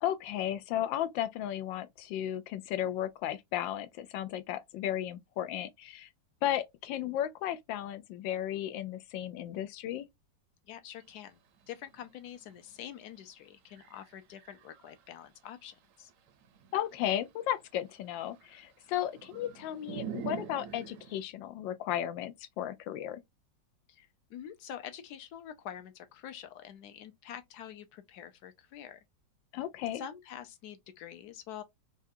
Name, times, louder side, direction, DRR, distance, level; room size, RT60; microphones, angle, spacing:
voice 1, 0.0-6.1 6.4-10.1 16.7-23.2 29.5-30.0, left 11 dB, 90° left, 1.3 m, -34 dB
voice 2, 10.7-11.4 11.7-16.1 23.9-29.0 29.9-31.6, left 9 dB, 70° left, 1.1 m, -46 dB
sound 1, 11.0-11.1 11.3-13.2 13.7-15.2 15.9-21.2, right 8 dB, 65° right, 0.8 m, -45 dB
4.8 x 2.3 x 2.6 m
omnidirectional pair, 2.0 m